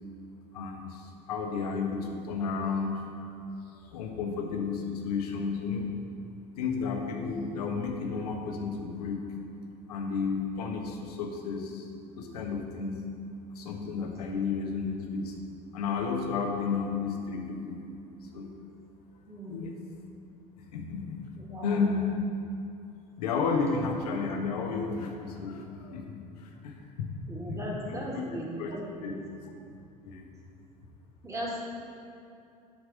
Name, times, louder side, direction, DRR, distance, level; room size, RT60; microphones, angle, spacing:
voice 1, 0.5-3.0 3.3-5.9 6.6-9.2 9.9-11.9 12.2-12.9 13.5-15.3 15.7-17.8 18.3-18.5 19.5-19.7 20.6-21.2 21.6-22.2 23.2-26.8 27.4-28.2 28.6-28.7 29.0-29.2 30.0-30.2, left 5 dB, 65° left, 2 dB, 1.2 m, -32 dB
voice 2, 19.3-19.7 21.4-21.8 27.3-29.2 31.2-31.6, equal, 15° right, -4 dB, 2.3 m, -37 dB
10.0 x 4.7 x 6.8 m, 2.6 s
figure-of-eight pair, 70°, 21 cm